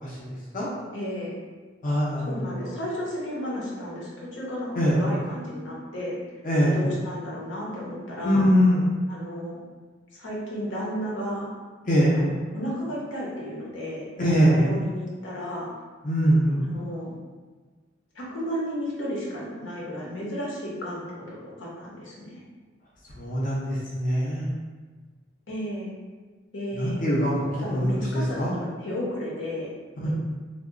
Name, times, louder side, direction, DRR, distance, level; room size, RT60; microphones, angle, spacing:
voice 1, 0.0-0.7 1.8-2.3 2.6-2.7 4.7-5.0 6.4-6.8 8.2-8.9 11.8-12.2 14.2-14.7 16.0-16.6 23.1-24.5 26.7-28.5 30.0-30.1, equal, 45° left, -7 dB, 0.5 m, -23 dB
voice 2, 0.9-1.3 2.3-6.2 6.7-8.5 9.1-9.6 10.1-11.5 12.2-14.1 14.6-15.7 16.6-17.1 18.1-22.4 25.5-25.9 26.5-27.1 27.5-29.7 30.0-30.1, equal, 90° left, -5 dB, 0.7 m, -33 dB
2.8 x 2.0 x 2.4 m, 1.4 s
head